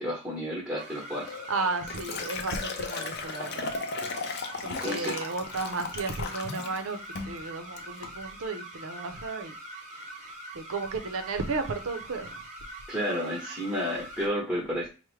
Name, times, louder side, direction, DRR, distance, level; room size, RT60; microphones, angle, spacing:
voice 1, 0.0-1.3 4.6-5.1 12.9-14.9, equal, 5° right, 1.0 m, -31 dB
sound 1, 0.8-14.3, right 1 dB, 35° right, 0.8 m, -43 dB
Liquid, 1.3-6.8 7.2-7.4 7.8-8.1, left 4 dB, 50° left, 0.5 m, -36 dB
voice 2, 1.5-3.7 4.6-9.5 9.9-12.5, right 3 dB, 75° right, 0.6 m, -34 dB
4.8 x 2.1 x 3.1 m
head